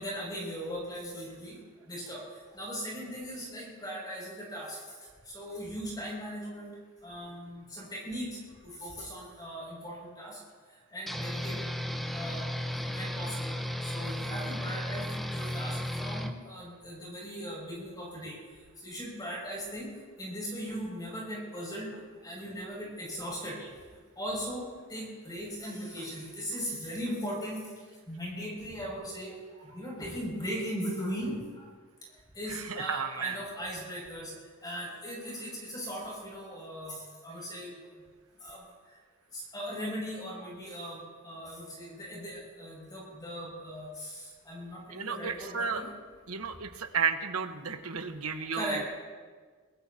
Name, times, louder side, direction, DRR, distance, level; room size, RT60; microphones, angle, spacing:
voice 1, 0.0-1.6 1.9-2.2 2.5-4.8 5.3-6.7 7.0-8.3 8.6-10.4 10.9-11.6 12.1-12.4 12.8-13.6 13.8-18.3 18.8-19.9 20.2-21.9 22.2-23.7 24.2-24.6 24.9-27.6 28.1-31.4 32.4-34.3 34.6-37.7 38.4-38.6 39.5-41.0 41.2-44.1 44.5-45.9 48.5-48.9, equal, 20° left, -4 dB, 6.5 m, -38 dB
sound 1, 11.1-16.3, left 1 dB, ahead, 0.9 m, -34 dB
voice 2, 32.5-33.4 44.9-45.8 46.3-48.8, right 6 dB, 90° right, 7 dB, 1.2 m, -33 dB
22.5 x 21.5 x 2.9 m, 1.5 s
head